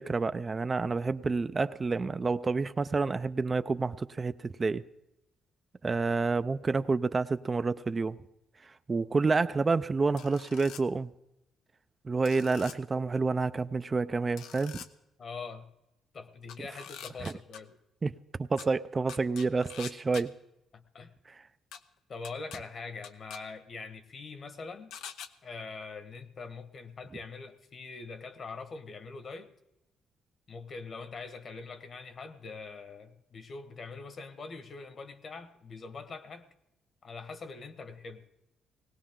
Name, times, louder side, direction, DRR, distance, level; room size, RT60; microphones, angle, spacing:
voice 1, 0.0-4.8 5.8-8.2 8.6-11.1 12.0-14.8 17.2-17.3 18.0-18.1 18.4-20.3 21.3-21.4, right 4 dB, 30° right, 0.5 m, -29 dB
sound 1, 10.2-10.8 12.3-12.8 14.4-14.9 16.5-17.6 18.6-18.7 19.1-20.2 21.7-21.8 22.2-22.6 23.0-23.4 24.9-25.3, left 8 dB, 85° left, 0.8 m, -44 dB
voice 2, 15.2-15.7 16.1-17.7 20.7-21.1 22.1-24.9 25.4-29.5 30.5-36.4 37.0-38.2, left 4 dB, 50° left, 1.4 m, -43 dB
19.5 x 17.5 x 3.8 m
cardioid pair, 90°, 0 cm